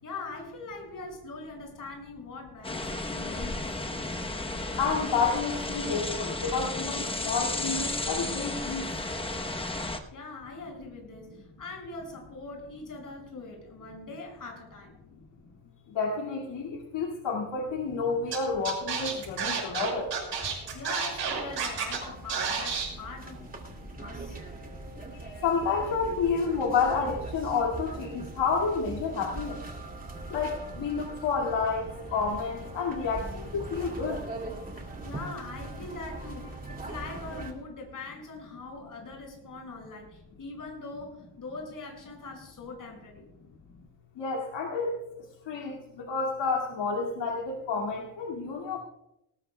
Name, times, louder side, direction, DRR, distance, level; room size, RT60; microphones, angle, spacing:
voice 1, 0.0-3.7 10.1-15.0 20.7-23.5 24.0-24.4 35.0-43.3, left 3 dB, 45° left, 0 dB, 6.2 m, -42 dB
sound 1, 2.6-10.0, left 2 dB, 10° left, 1.0 m, -33 dB
voice 2, 4.8-8.9 15.9-20.1 25.4-29.6 30.3-34.2 44.2-44.9 45.5-48.8, left 5 dB, 80° left, -1 dB, 2.3 m, -30 dB
sound 2, 17.9-37.5, right 2 dB, 20° right, 2.4 m, -41 dB
Scratching (performance technique), 18.3-18.4 18.6-22.0 22.3-22.8, right 6 dB, 65° right, 6.4 m, -30 dB
19.5 x 19.0 x 2.3 m, 0.85 s
cardioid pair, 150°, 43 cm